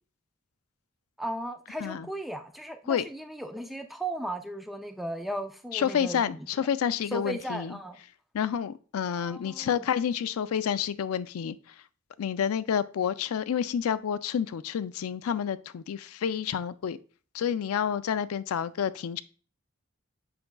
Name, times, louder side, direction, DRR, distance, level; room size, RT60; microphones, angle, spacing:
voice 1, 1.2-6.5 7.1-8.0 9.1-9.8, right 1 dB, ahead, 0.4 m, -36 dB
voice 2, 5.7-7.7 8.3-11.6 12.2-17.0 17.3-19.2, left 8 dB, 90° left, 0.4 m, -29 dB
7.7 x 5.8 x 2.3 m
head